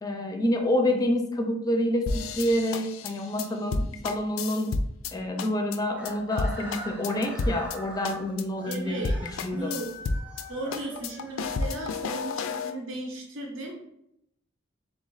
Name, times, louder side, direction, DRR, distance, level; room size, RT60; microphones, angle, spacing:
voice 1, 0.0-4.8 5.1-9.8, left 1 dB, 20° left, 4 dB, 0.5 m, -28 dB
sound 1, 2.1-5.1 5.4-5.8 6.0-6.1 6.4-7.8 8.0-8.4 8.7-8.8 9.0-10.4 10.7-12.7, left 3 dB, 80° left, 0.4 m, -31 dB
Chicken rooster, 5.9-11.9, equal, 10° right, 0.8 m, -43 dB
voice 2, 8.6-9.2 9.5-9.9 10.5-13.7, right 2 dB, 75° right, 0 dB, 0.8 m, -35 dB
3.8 x 3.0 x 3.8 m, 0.77 s
head